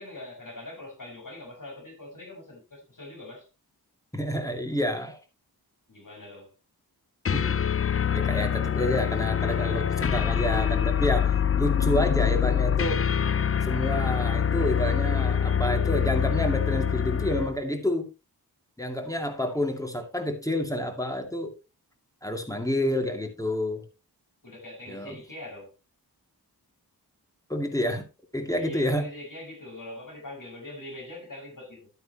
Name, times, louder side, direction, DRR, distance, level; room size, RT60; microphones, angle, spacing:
voice 1, 0.0-3.5 5.9-6.5 24.4-25.7 28.5-31.9, left 1 dB, 55° left, 6.3 m, -43 dB
voice 2, 4.1-5.2 7.3-13.0 13.6-18.1 18.8-21.5 22.2-23.8 24.9-25.2 27.5-28.1 28.3-29.1, left 1 dB, 10° left, 2.3 m, -29 dB
sound 1, 7.3-17.6, left 8 dB, 35° left, 0.4 m, -25 dB
11.5 x 9.5 x 2.9 m
wide cardioid pair, 60°, 39 cm